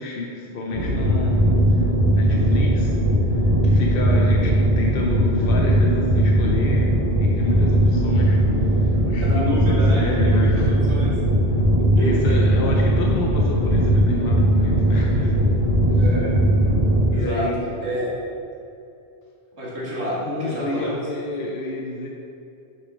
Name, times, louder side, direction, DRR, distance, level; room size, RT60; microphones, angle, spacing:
voice 1, 0.0-1.4 1.7-1.8 2.1-3.0 3.6-10.7 12.0-15.6 17.1-17.7 20.2-22.1, left 2 dB, 60° left, -1 dB, 0.9 m, -30 dB
sound 1, 0.7-17.1, right 1 dB, 35° right, 2.0 m, -19 dB
voice 2, 9.3-10.5 10.9-11.2 11.9-12.4 15.9-16.3 17.1-17.5 17.8-18.1 19.6-21.1, equal, 75° right, -7 dB, 2.3 m, -29 dB
8.8 x 6.6 x 3.1 m, 2.6 s
omnidirectional pair, 1.1 m